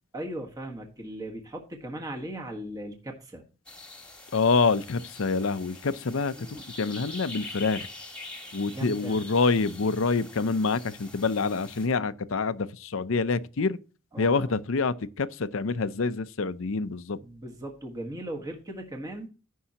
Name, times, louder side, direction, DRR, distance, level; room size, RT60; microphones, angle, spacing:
voice 1, 0.1-3.4 6.4-6.6 8.7-9.2 14.1-14.5 17.2-19.3, right 1 dB, 15° right, 1.5 m, -38 dB
sound 1, 3.6-11.9, left 2 dB, 5° left, 1.7 m, -44 dB
voice 2, 4.3-7.9 8.5-13.8 14.2-17.2, left 4 dB, 65° left, 0.6 m, -26 dB
15.5 x 5.5 x 2.9 m
head